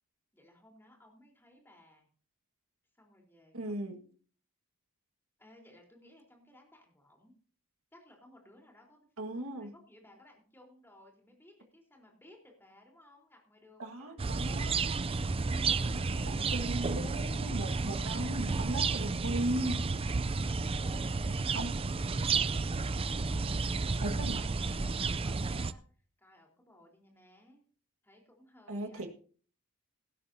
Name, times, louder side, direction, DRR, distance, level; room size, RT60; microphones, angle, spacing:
voice 1, 0.3-2.1 2.9-4.1 5.4-7.3 7.9-14.7 15.6-17.1 20.8-21.2 21.7-27.6 28.0-29.1, left 1 dB, 10° left, 1 dB, 3.9 m, -60 dB
voice 2, 3.5-4.0 9.2-9.7 13.8-14.8 15.6-19.9 21.5-21.7 24.0-24.4 28.7-29.1, right 1 dB, 70° right, 5 dB, 1.8 m, -37 dB
sound 1, 14.2-25.7, right 4 dB, 25° right, 0.4 m, -32 dB
17.5 x 12.5 x 2.8 m, 0.43 s
head